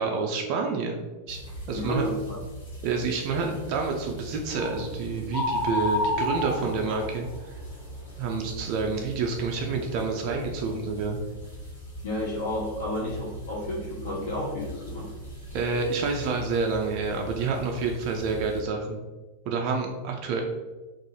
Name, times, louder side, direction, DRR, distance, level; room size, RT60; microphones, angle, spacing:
voice 1, 0.0-1.4 1.7-2.1 2.8-7.5 8.2-11.2 15.5-19.0 19.5-20.4, right 4 dB, 45° right, 2 dB, 0.3 m, -28 dB
sound 1, 1.3-18.6, equal, 80° left, 0.9 m, -41 dB
voice 2, 1.7-2.4 12.0-15.1, left 1 dB, 60° left, -5 dB, 0.5 m, -31 dB
sound 2, 4.6-4.8 5.3-7.4, left 2 dB, 35° left, 1.1 m, -28 dB
2.5 x 2.3 x 2.8 m, 1.2 s
figure-of-eight pair, 90°, 0 cm